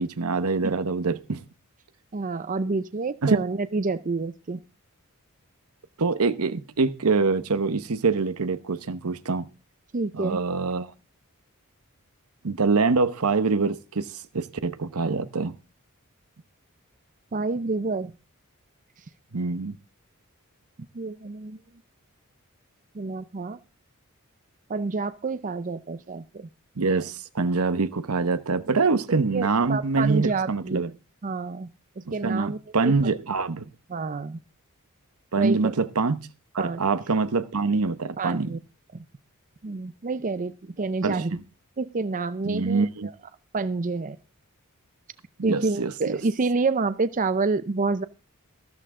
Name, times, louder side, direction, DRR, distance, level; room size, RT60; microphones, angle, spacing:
voice 1, 0.0-1.4 3.2-3.4 6.0-9.5 10.1-10.9 12.4-14.1 14.3-15.5 19.3-19.8 26.8-30.9 32.2-33.7 35.3-36.2 36.5-38.5 41.0-41.4 42.4-43.1 45.4-46.2, right 4 dB, 85° right, 0.9 m, -25 dB
voice 2, 2.1-4.6 9.9-10.4 17.3-18.1 20.9-21.6 22.9-23.6 24.7-26.5 29.3-30.8 31.2-31.7 32.0-32.9 33.9-34.4 35.4-35.7 36.6-36.8 38.2-38.6 38.9-39.0 39.6-41.4 41.8-43.1 43.5-44.2 45.4-48.0, right 3 dB, 35° right, 0.6 m, -28 dB
13.5 x 13.0 x 3.7 m
head